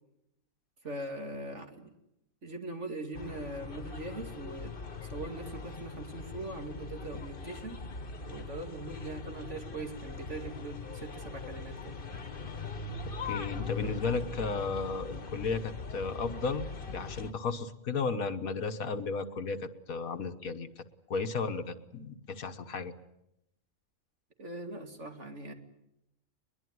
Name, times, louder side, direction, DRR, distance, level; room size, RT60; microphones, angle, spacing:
voice 1, 0.8-2.0 2.4-7.8 8.3-12.0 24.4-25.5, right 2 dB, 55° right, 4 dB, 2.6 m, -41 dB
sound 1, 3.1-17.3, left 4 dB, 40° left, 1.6 m, -41 dB
voice 2, 13.2-20.8 21.1-22.9, left 4 dB, 80° left, 8 dB, 1.6 m, -34 dB
22.0 x 21.5 x 9.4 m, 0.83 s
omnidirectional pair, 1.5 m